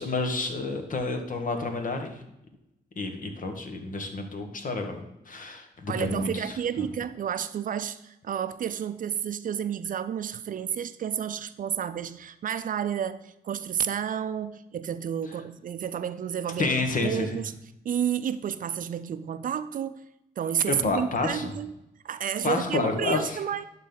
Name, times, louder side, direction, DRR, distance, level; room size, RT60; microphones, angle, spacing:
voice 1, 0.0-2.2 3.0-6.3 6.8-6.9 16.6-17.4 20.7-21.5 22.4-23.4, left 3 dB, 55° left, 5 dB, 1.6 m, -29 dB
voice 2, 5.9-16.7 17.0-17.5 17.8-20.0 20.4-21.7 22.0-23.6, right 8 dB, 55° right, 13 dB, 0.5 m, -31 dB
11.5 x 4.1 x 4.0 m, 0.85 s
supercardioid pair, 60°, 17 cm